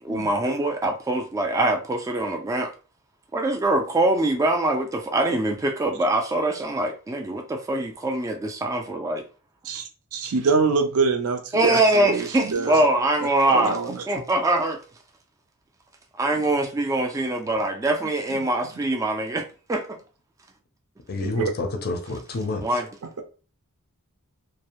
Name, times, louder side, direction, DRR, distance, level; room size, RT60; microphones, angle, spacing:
voice 1, 0.0-2.7 3.3-9.2 11.5-13.8 14.1-14.8 16.2-19.4 19.7-20.0 22.6-22.9, right 1 dB, 15° right, 0.3 m, -23 dB
voice 2, 10.1-12.7 13.5-14.0 18.3-18.4 21.2-21.4, right 4 dB, 70° right, 0.5 m, -24 dB
voice 3, 21.1-22.8, left 2 dB, 45° left, 0.5 m, -29 dB
2.5 x 2.0 x 2.8 m
head